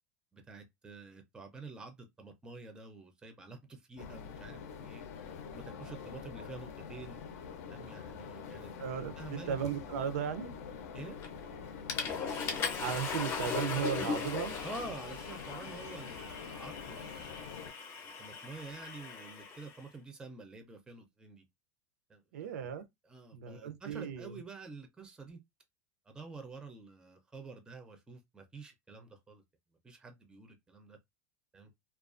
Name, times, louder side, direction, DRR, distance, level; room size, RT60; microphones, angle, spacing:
voice 1, 0.3-5.0 5.5-7.2 7.7-8.7 9.2-9.6 10.9-11.2 14.6-17.6 18.0-21.4 22.1-22.6 23.0-25.4 26.1-29.4 29.8-31.0 31.5-31.7, right 3 dB, 10° right, 0.4 m, -48 dB
sound 1, 4.0-17.7, left 6 dB, 80° left, 0.5 m, -46 dB
voice 2, 8.8-10.6 12.8-14.5 22.3-22.8 23.3-24.3, right 8 dB, 85° right, 0.5 m, -36 dB
Water / Toilet flush, 11.2-11.5 11.9-19.8, left 5 dB, 35° left, 0.6 m, -39 dB
2.3 x 2.2 x 2.4 m
supercardioid pair, 135°, 8 cm